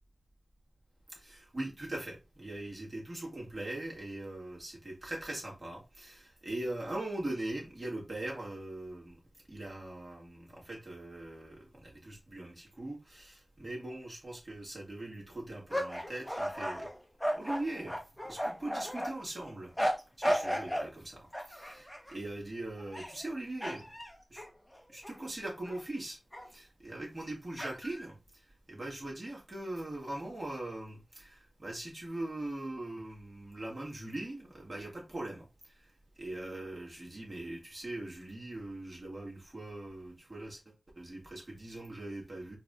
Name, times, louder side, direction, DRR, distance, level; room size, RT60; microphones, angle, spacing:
voice 1, 1.2-9.2 9.5-16.9 17.4-18.0 18.2-19.7 20.2-23.9 24.3-24.4 24.9-26.2 26.5-28.2 28.7-35.4 36.2-40.6 41.0-42.6, right 1 dB, 35° right, 1.8 m, -41 dB
sound 1, 15.7-19.1 19.8-20.9 21.3-22.1 22.8-23.3 23.6-25.2 25.7-25.8 26.3-26.5 27.6-28.0, equal, 10° left, 0.8 m, -34 dB
4.6 x 2.8 x 2.4 m
wide cardioid pair, 80°, 0 cm